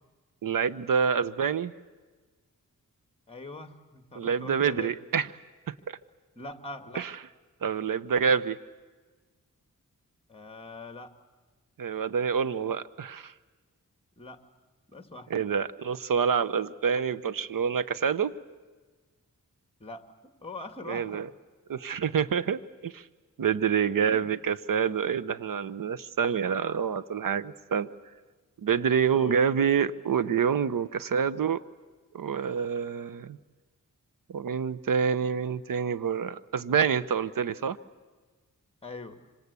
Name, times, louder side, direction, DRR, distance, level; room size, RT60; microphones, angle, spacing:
voice 1, 0.4-1.7 4.1-5.3 5.7-6.0 6.9-7.1 7.6-8.6 11.8-13.3 15.3-18.3 20.9-21.3 21.7-23.0 23.4-27.9 28.6-31.6 32.1-33.4 34.3-37.8, right 7 dB, 85° right, 16 dB, 0.9 m, -27 dB
voice 2, 3.3-4.9 6.4-7.0 10.3-11.1 14.2-14.4 14.9-15.3 19.8-20.0 20.4-21.2 24.0-24.3 29.1-29.4 38.8-39.2, left 2 dB, 15° left, 8 dB, 2.1 m, -42 dB
26.0 x 25.5 x 8.3 m, 1.3 s
wide cardioid pair, 105°, 33 cm